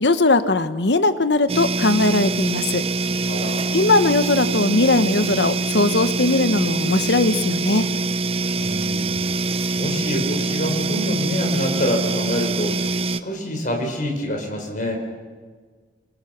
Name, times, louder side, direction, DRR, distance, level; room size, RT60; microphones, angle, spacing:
voice 1, 0.0-2.8 3.7-7.9, left 2 dB, 80° left, 11 dB, 1.1 m, -19 dB
sound 1, 1.5-13.2, right 3 dB, 35° right, 0.7 m, -24 dB
voice 2, 3.3-3.8 8.6-9.2 9.8-14.9, equal, 50° left, 2 dB, 5.3 m, -26 dB
28.0 x 21.0 x 6.0 m, 1.5 s
head